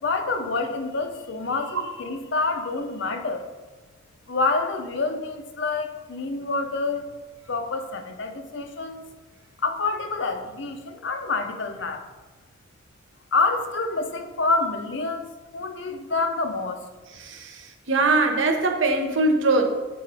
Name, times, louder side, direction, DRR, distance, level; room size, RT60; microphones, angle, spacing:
voice 1, 0.0-3.5 4.3-7.1 7.5-9.1 9.6-12.0 13.3-16.8, left 3 dB, 65° left, 6 dB, 0.7 m, -27 dB
voice 2, 17.2-19.7, right 2 dB, 70° right, 4 dB, 0.8 m, -22 dB
7.0 x 3.7 x 4.8 m, 1.3 s
head